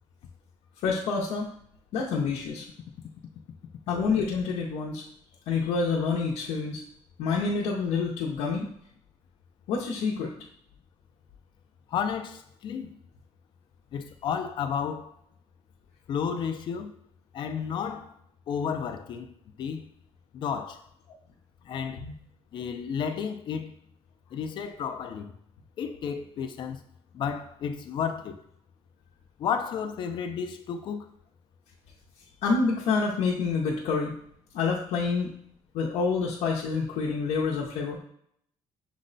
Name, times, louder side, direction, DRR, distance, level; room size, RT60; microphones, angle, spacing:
voice 1, 0.8-1.5 1.9-2.7 3.9-5.0 5.5-6.8 7.2-8.7 9.7-10.3 22.0-22.1 32.4-34.1 34.5-35.3 35.7-38.0, left 4 dB, 75° left, 0.7 m, -27 dB
voice 2, 11.9-13.0 13.9-15.1 16.1-17.0 17.3-18.1 18.5-19.9 20.3-20.8 21.6-22.0 22.5-23.7 24.3-25.3 25.8-26.8 27.1-28.4 29.4-31.1, left 7 dB, 45° left, 0.4 m, -32 dB
6.2 x 2.1 x 3.9 m
cardioid pair, 175°, 12 cm